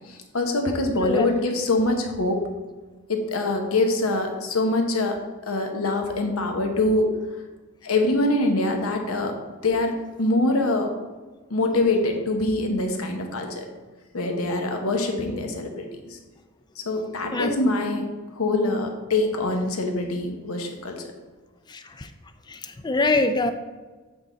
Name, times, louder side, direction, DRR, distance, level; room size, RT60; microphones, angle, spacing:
voice 1, 0.0-2.4 3.1-7.1 7.8-9.4 9.6-10.9 11.5-13.7 14.1-16.2 16.8-18.1 18.3-21.0, left 2 dB, 70° left, 3 dB, 1.0 m, -24 dB
voice 2, 21.7-22.1 22.5-23.5, left 2 dB, 20° left, 8 dB, 0.3 m, -24 dB
8.0 x 3.8 x 4.0 m, 1.3 s
head